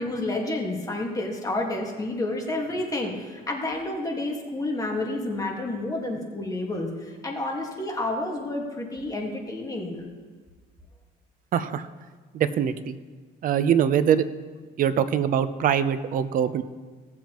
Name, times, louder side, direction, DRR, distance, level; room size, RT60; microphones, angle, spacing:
voice 1, 0.0-9.9, left 2 dB, 20° left, 0 dB, 1.7 m, -30 dB
voice 2, 11.5-11.9 12.3-12.9 13.4-14.2 14.8-16.6, right 9 dB, 55° right, 12 dB, 0.6 m, -23 dB
17.5 x 7.3 x 3.0 m, 1.5 s
cardioid pair, 110°, 17 cm